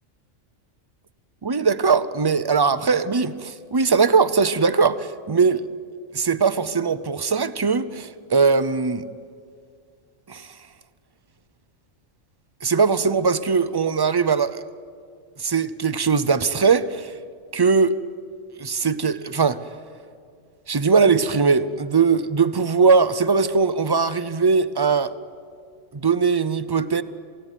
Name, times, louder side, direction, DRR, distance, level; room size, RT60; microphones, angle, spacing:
voice 1, 1.4-5.6 6.1-9.0 10.3-10.5 12.6-14.6 15.4-17.1 17.5-18.0 18.6-19.6 20.7-25.1 26.0-27.0, right 5 dB, 40° right, 0.3 m, -20 dB
28.0 x 16.5 x 9.1 m
omnidirectional pair, 1.4 m